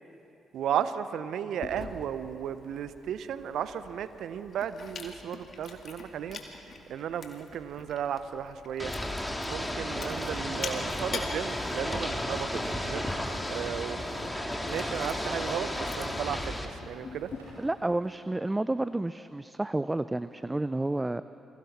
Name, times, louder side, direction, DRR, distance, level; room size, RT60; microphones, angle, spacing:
voice 1, 0.5-6.4 6.9-8.9 9.5-13.1 13.5-14.3 14.6-17.3, right 9 dB, 65° right, 13 dB, 0.7 m, -34 dB
Chewing mastication, 1.6-17.4, left 4 dB, 50° left, 2.1 m, -45 dB
Ocean / Boat Water vehicle, 8.8-16.7, left 1 dB, 5° left, 2.5 m, -33 dB
Walk footsteps, 12.2-18.2, right 1 dB, 90° right, 4.7 m, -57 dB
voice 2, 17.6-21.2, right 2 dB, 15° right, 14 dB, 0.4 m, -30 dB
28.5 x 21.0 x 4.3 m, 2.8 s
hypercardioid pair, 40°, 0 cm